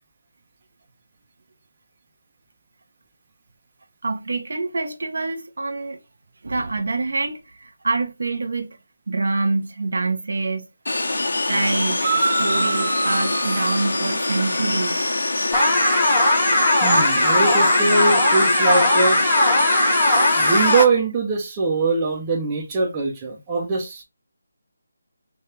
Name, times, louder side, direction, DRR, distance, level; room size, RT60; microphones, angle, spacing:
voice 1, 4.0-6.0 6.4-8.8 9.1-10.7 11.5-15.1, right 3 dB, 65° right, 0.9 m, -26 dB
sound 1, 10.9-20.9, left 2 dB, 80° left, 1.0 m, -25 dB
sound 2, 12.0-15.3, right 3 dB, 40° right, 1.0 m, -27 dB
sound 3, 15.5-20.8, left 1 dB, 5° left, 1.1 m, -18 dB
voice 2, 16.8-19.3 20.4-24.0, right 3 dB, 15° right, 0.7 m, -22 dB
3.3 x 2.4 x 4.3 m
figure-of-eight pair, 175°, 0 cm